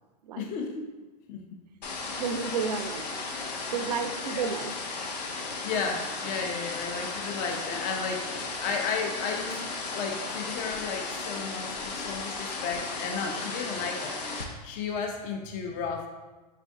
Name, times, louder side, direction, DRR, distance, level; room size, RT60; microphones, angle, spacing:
voice 1, 0.4-0.9 1.3-1.4 4.3-4.5 5.6-16.1, left 5 dB, 40° left, 3 dB, 0.6 m, -34 dB
sound 1, 1.8-14.4, left 3 dB, 85° left, 0.7 m, -35 dB
voice 2, 2.1-3.3 3.7-4.7, right 6 dB, 85° right, 9 dB, 0.4 m, -31 dB
4.4 x 2.5 x 3.5 m, 1.2 s
hypercardioid pair, 115°, 20 cm